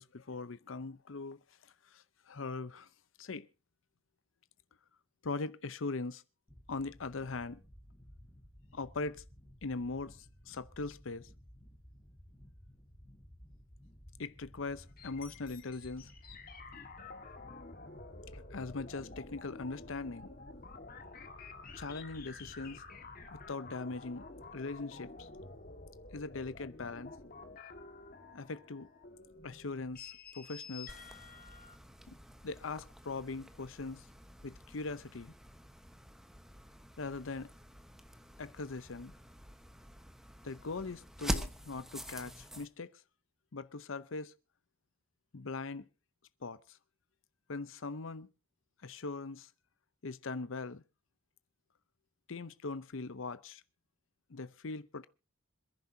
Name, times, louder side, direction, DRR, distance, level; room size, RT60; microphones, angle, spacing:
voice 1, 0.0-1.4 1.9-2.9 3.2-3.5 5.2-6.2 6.7-7.6 8.7-9.2 9.6-11.3 14.2-16.1 18.3-20.3 21.7-22.8 23.3-24.3 24.5-25.3 26.1-27.2 28.3-28.9 29.4-31.0 32.1-32.2 32.4-34.0 34.4-35.3 37.0-37.5 38.4-39.1 40.4-42.9 43.5-44.3 45.3-45.9 46.4-46.8 47.5-48.3 48.8-49.5 50.0-50.8 52.3-53.6 54.3-55.1, left 3 dB, 80° left, 0.8 m, -41 dB
sound 1, 6.5-23.4, equal, 15° left, 4.6 m, -57 dB
sound 2, 14.8-31.8, left 3 dB, 45° left, 1.8 m, -50 dB
sound 3, 30.9-42.7, equal, ahead, 1.1 m, -45 dB
26.5 x 10.5 x 2.8 m
head